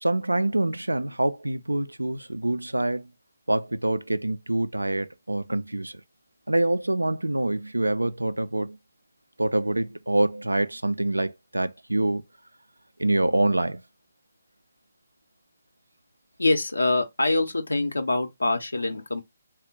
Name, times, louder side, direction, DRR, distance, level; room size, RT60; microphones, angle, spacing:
voice 1, 0.0-3.1 3.5-6.0 6.5-8.8 9.4-12.2 13.0-13.8, right 1 dB, 85° right, 0.3 m, -25 dB
voice 2, 16.4-19.2, left 2 dB, 75° left, 0.7 m, -24 dB
3.6 x 2.1 x 3.9 m
figure-of-eight pair, 140°, 0 cm